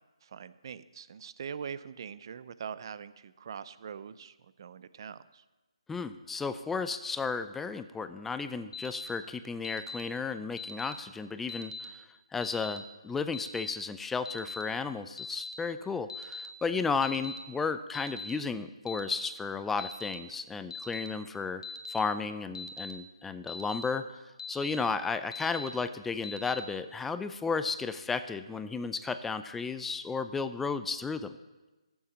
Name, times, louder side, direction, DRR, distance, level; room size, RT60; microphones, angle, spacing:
voice 1, 0.2-5.4, right 7 dB, 45° right, 15 dB, 0.6 m, -43 dB
voice 2, 5.9-12.0 12.3-21.6 21.9-24.2 24.5-31.4, left 4 dB, 5° left, 11 dB, 0.4 m, -33 dB
Alarm, 8.7-9.1 9.6-10.0 10.6-10.9 11.5-11.8 12.4-12.8 13.3-13.7 14.3-14.6 15.2-15.5 16.1-16.5 17.0-17.4 17.9-18.3 18.9-19.2 19.8-20.1 20.7-21.1 21.6-22.0 22.5-22.9 23.5-23.8 24.4-24.8 25.3-25.7 26.2-26.6, left 3 dB, 60° left, 1.4 m, -40 dB
14.5 x 7.1 x 7.3 m, 1.2 s
figure-of-eight pair, 155°, 3 cm